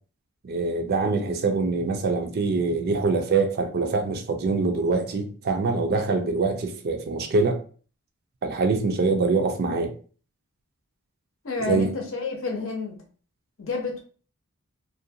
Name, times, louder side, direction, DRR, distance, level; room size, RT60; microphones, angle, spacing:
voice 1, 0.4-7.6 8.4-9.9 11.6-11.9, right 3 dB, 45° right, 0.4 m, -24 dB
voice 2, 11.4-13.0 13.6-14.0, left 4 dB, 65° left, 0.7 m, -29 dB
2.5 x 2.2 x 2.6 m
head